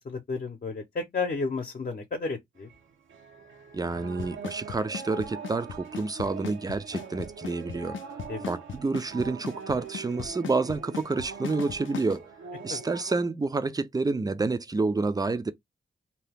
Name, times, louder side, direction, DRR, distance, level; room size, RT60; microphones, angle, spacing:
voice 1, 0.0-2.7 8.3-8.5 12.7-12.8, left 4 dB, 45° left, 0.8 m, -32 dB
sound 1, 2.6-13.2, right 6 dB, 85° right, 0.7 m, -43 dB
voice 2, 3.7-8.0 8.5-12.3 12.6-15.5, right 3 dB, 20° right, 0.4 m, -29 dB
Drum kit / Snare drum / Bass drum, 4.2-12.2, left 8 dB, 80° left, 0.5 m, -37 dB
2.8 x 2.3 x 3.3 m
cardioid pair, 85°, 20 cm